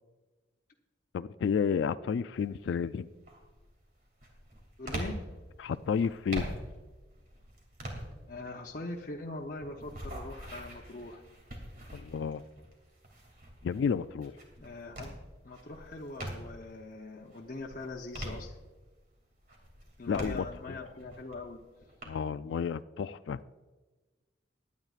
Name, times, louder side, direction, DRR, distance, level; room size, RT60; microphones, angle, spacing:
voice 1, 1.1-3.1 5.6-6.5 11.9-12.4 13.6-14.3 20.1-20.8 22.1-23.4, left 6 dB, 80° left, 0.3 m, -31 dB
sound 1, 2.3-2.7 3.2-16.7 17.2-19.0 19.4-22.0, right 1 dB, 50° right, 2.6 m, -44 dB
voice 2, 4.8-5.2 8.3-11.2 14.6-15.1 15.4-18.6 20.0-21.6, left 2 dB, 50° left, 0.8 m, -42 dB
21.5 x 9.4 x 2.5 m
head